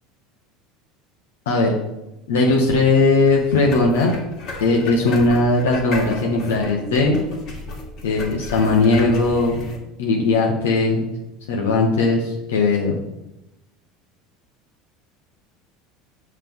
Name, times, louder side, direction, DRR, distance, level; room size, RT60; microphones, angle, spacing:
voice 1, 2.3-4.1 4.6-7.2 8.0-9.6 10.0-11.0 11.5-13.0, left 3 dB, 85° left, -1 dB, 0.9 m, -18 dB
sound 1, 3.3-9.8, left 2 dB, 55° left, 1.9 m, -34 dB
5.8 x 3.2 x 5.3 m, 0.91 s
hypercardioid pair, 85°, 0 cm